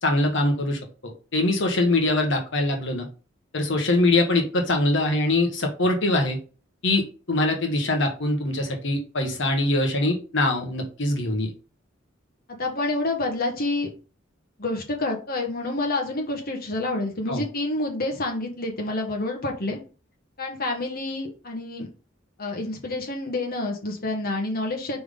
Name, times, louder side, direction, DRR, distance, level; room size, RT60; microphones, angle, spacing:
voice 1, 0.0-3.1 3.5-6.4 6.8-11.5 17.3-17.4, left 2 dB, 65° left, 3 dB, 1.4 m, -23 dB
voice 2, 12.6-13.9 14.6-19.8 20.4-21.9 22.4-25.0, left 2 dB, 50° left, 1 dB, 1.4 m, -28 dB
6.0 x 5.0 x 3.8 m, 0.35 s
head